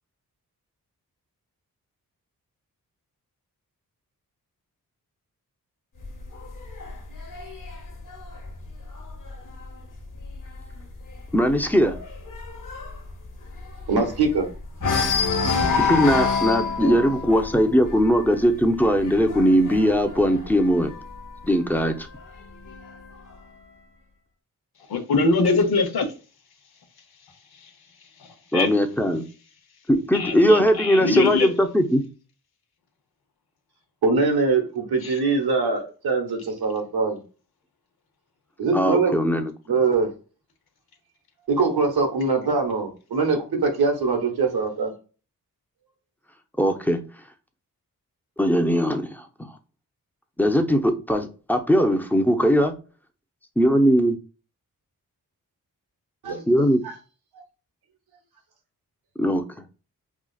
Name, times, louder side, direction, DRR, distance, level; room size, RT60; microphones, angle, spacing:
sound 1, 6.0-9.6 10.0-10.4 10.6-10.7 11.1-14.4 14.8-21.3 22.2-23.2, left 5 dB, 55° left, 1.0 m, -28 dB
voice 1, 11.3-12.0 15.8-20.9 21.4-22.1 28.5-29.2 29.9-32.0 38.7-39.5 46.6-47.0 48.4-49.3 50.4-52.7 53.6-54.2 56.5-56.8 59.2-59.4, equal, 5° left, 0.7 m, -20 dB
voice 2, 13.9-14.5 34.0-37.2 38.6-39.2 39.7-40.1 41.5-44.9 56.2-56.9, right 4 dB, 85° right, 1.1 m, -23 dB
voice 3, 24.9-26.1 28.5-28.7 30.1-31.5 35.0-35.2, left 3 dB, 85° left, 0.9 m, -22 dB
4.9 x 2.4 x 2.4 m
cardioid pair, 50°, 37 cm